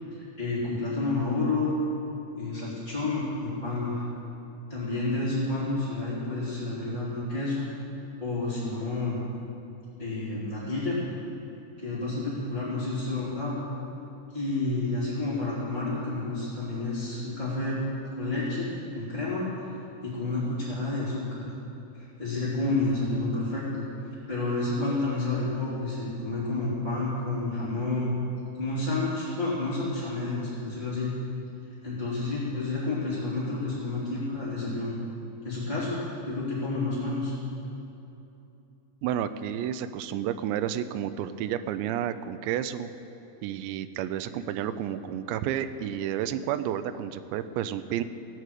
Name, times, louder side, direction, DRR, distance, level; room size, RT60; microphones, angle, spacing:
voice 1, 0.1-1.8 2.4-4.0 4.7-7.7 8.2-9.2 10.0-11.0 11.8-13.6 14.3-17.8 18.1-18.7 18.9-19.4 20.0-21.5 22.0-23.9 24.3-28.1 28.6-31.1 31.8-35.0 35.4-37.3, left 2 dB, 15° right, -11 dB, 2.2 m, -30 dB
voice 2, 39.0-42.9 43.4-48.0, right 10 dB, 85° right, 11 dB, 2.6 m, -31 dB
17.5 x 6.4 x 8.3 m, 2.9 s
omnidirectional pair, 5.5 m